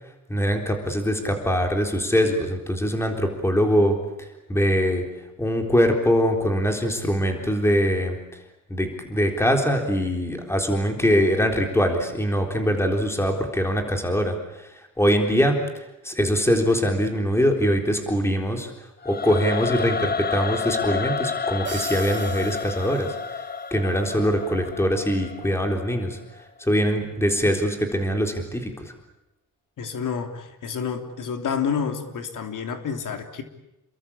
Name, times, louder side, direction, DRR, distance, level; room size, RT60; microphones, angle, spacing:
voice 1, 0.3-5.0 5.4-8.4 8.7-18.7 19.0-23.4 23.7-26.2 26.6-28.9, equal, 10° left, 3 dB, 3.9 m, -23 dB
Singing / Musical instrument, 19.0-26.1, left 5 dB, 30° left, 1.0 m, -30 dB
sound 1, 21.6-23.7, right 6 dB, 35° right, 4.0 m, -40 dB
voice 2, 29.8-33.4, left 6 dB, 70° left, 6 dB, 3.4 m, -29 dB
29.0 x 23.0 x 8.6 m, 0.92 s
wide cardioid pair, 180°, 33 cm